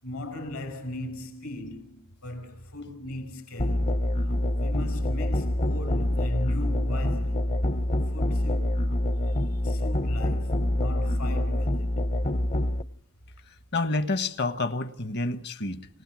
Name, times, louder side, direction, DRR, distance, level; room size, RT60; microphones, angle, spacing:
voice 1, 0.0-3.9 4.6-7.5 8.1-8.9 9.3-12.0, left 1 dB, 70° left, 5.6 m, -38 dB
Musical instrument, 3.6-12.8, left 1 dB, 30° left, 0.8 m, -26 dB
voice 2, 13.7-15.9, left 2 dB, 50° left, 1.3 m, -29 dB
28.5 x 17.5 x 6.3 m
head